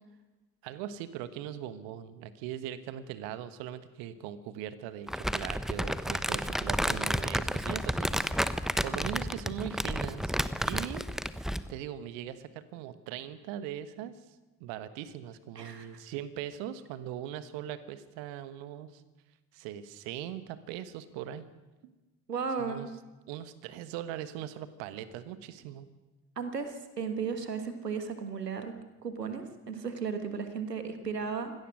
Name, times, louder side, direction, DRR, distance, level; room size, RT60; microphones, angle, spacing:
voice 1, 0.6-8.3 8.8-10.3 10.6-11.1 11.7-14.2 14.6-19.0 19.5-21.5 22.6-22.9 23.3-25.9, right 11 dB, 65° right, 13 dB, 1.5 m, -40 dB
Crumpling crinkling, 5.1-11.7, equal, ahead, 0.9 m, -31 dB
voice 2, 15.5-15.9 22.3-22.9 26.4-28.7 29.0-31.5, right 5 dB, 90° right, 8 dB, 1.6 m, -35 dB
24.5 x 17.5 x 6.4 m, 1.1 s
figure-of-eight pair, 50°, 47 cm